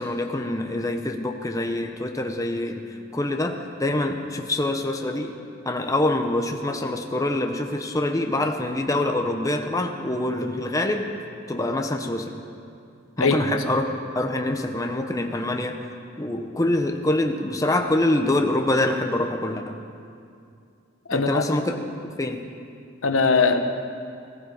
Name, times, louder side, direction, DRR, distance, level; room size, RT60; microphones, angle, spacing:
voice 1, 0.0-2.8 3.1-5.3 5.6-11.1 11.5-12.3 13.2-15.8 16.2-19.8 21.1-21.8 22.0-22.5, left 1 dB, 15° left, 4 dB, 0.9 m, -25 dB
voice 2, 21.1-21.4 23.0-23.6, left 4 dB, 90° left, 7 dB, 1.1 m, -20 dB
19.5 x 14.5 x 5.0 m, 2.4 s
head